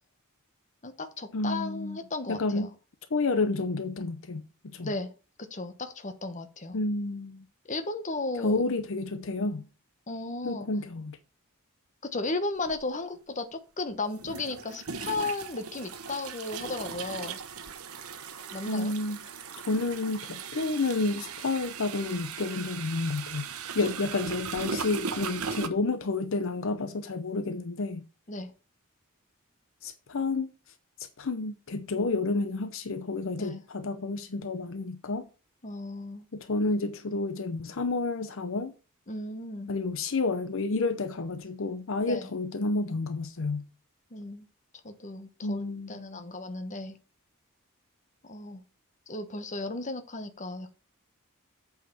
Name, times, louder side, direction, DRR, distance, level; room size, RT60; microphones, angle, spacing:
voice 1, 0.8-2.7 4.8-5.1 5.5-6.8 7.7-8.6 10.1-10.7 12.0-17.4 18.5-18.9 23.8-23.9 28.3-28.5 33.4-33.6 35.6-36.2 39.1-39.7 42.0-42.3 44.1-44.5 44.8-47.0 48.2-48.6 49.1-50.7, left 2 dB, 35° left, 1.1 m, -35 dB
voice 2, 1.3-2.0 2.3-2.7 3.1-4.9 6.7-7.5 8.4-9.7 10.4-11.2 18.7-19.2 19.7-23.5 23.7-28.0 29.8-30.5 31.0-35.3 36.3-38.7 39.7-43.7 45.4-46.3, left 3 dB, 65° left, 0.7 m, -30 dB
sound 1, 12.7-12.8 14.2-25.7, right 6 dB, 80° right, 1.0 m, -38 dB
8.3 x 4.9 x 5.7 m
head